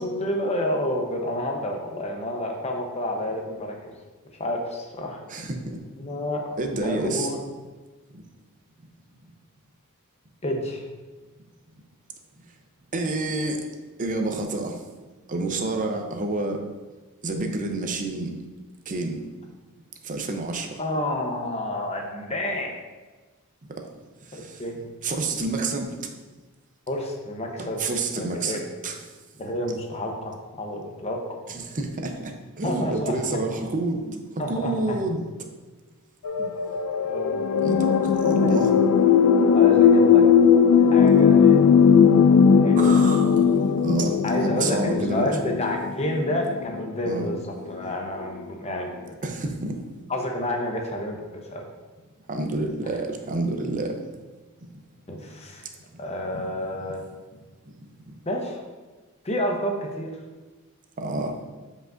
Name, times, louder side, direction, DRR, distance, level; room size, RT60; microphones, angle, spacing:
voice 1, 0.0-3.9 4.4-5.2 5.9-6.4 6.7-7.4 10.4-10.8 20.8-22.8 24.6-24.8 26.9-27.8 28.2-28.6 29.4-31.2 32.6-33.4 34.1-35.0 36.4-36.5 37.0-37.3 38.4-38.5 39.5-40.2 40.7-41.6 42.5-42.8 44.2-49.2 50.1-51.7 55.1-55.7 56.0-57.0 58.2-58.6 59.2-60.1, left 1 dB, 30° left, 2 dB, 0.8 m, -29 dB
voice 2, 5.3-5.8 6.6-7.3 8.1-8.2 12.9-13.7 14.0-14.8 15.3-16.6 17.2-18.3 18.9-19.2 20.0-20.8 24.3-24.6 25.0-26.1 27.6-28.6 28.8-29.0 31.5-34.0 34.3-35.3 37.6-38.7 42.8-43.5 43.8-45.3 47.0-47.3 49.2-49.8 52.3-54.0 54.6-54.7 58.1-58.2 61.0-61.4, right 2 dB, 35° right, 4 dB, 0.7 m, -28 dB
sound 1, 36.2-47.0 47.9-48.0, left 6 dB, 85° left, 0.3 m, -18 dB
7.8 x 5.1 x 2.5 m, 1.3 s
head